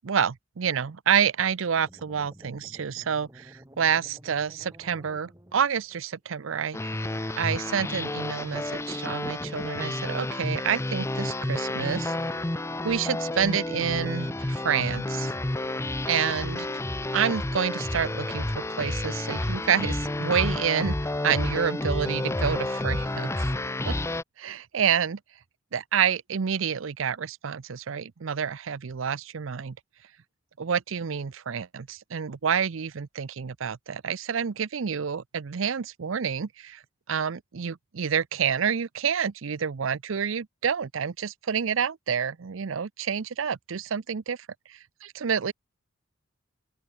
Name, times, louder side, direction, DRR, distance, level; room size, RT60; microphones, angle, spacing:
voice 1, 0.0-7.0 7.4-12.1 12.8-15.3 16.1-16.7 17.1-21.0 21.2-23.5 23.9-24.0 24.4-25.2 25.7-29.8 30.6-36.8 37.1-44.4 44.7-45.5, right 7 dB, 80° right, 0.6 m, -28 dB
sound 1, 1.7-6.0, equal, 15° right, 3.1 m, -52 dB
sound 2, 6.7-24.2, left 1 dB, 15° left, 0.6 m, -30 dB
open air
head